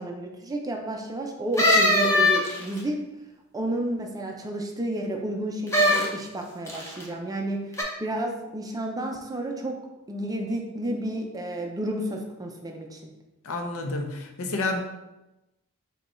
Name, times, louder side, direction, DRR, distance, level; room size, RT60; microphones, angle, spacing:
voice 1, 0.0-3.0 3.5-9.8 10.1-13.1, right 1 dB, 15° right, 2 dB, 0.5 m, -31 dB
sound 1, 1.6-2.8 5.7-6.1 6.7-7.0 7.7-7.8, left 1 dB, 15° left, 0.8 m, -20 dB
voice 2, 13.4-14.8, left 2 dB, 70° left, 4 dB, 0.6 m, -29 dB
5.1 x 2.3 x 4.2 m, 0.98 s
head